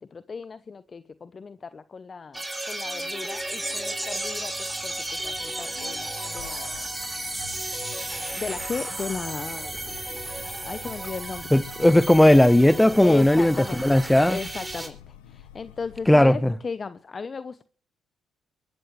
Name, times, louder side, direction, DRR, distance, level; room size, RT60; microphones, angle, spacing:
voice 1, 0.0-6.8 8.3-9.9 10.7-11.6 13.0-14.0 14.3-17.6, left 5 dB, 40° left, 0.8 m, -36 dB
sound 1, 2.3-14.9, right 1 dB, 15° right, 4.5 m, -33 dB
sound 2, 5.6-16.3, left 11 dB, 90° left, 1.1 m, -48 dB
voice 2, 11.5-14.4 16.1-16.5, left 1 dB, 10° left, 0.8 m, -17 dB
23.5 x 13.0 x 3.2 m
hypercardioid pair, 55°, 0 cm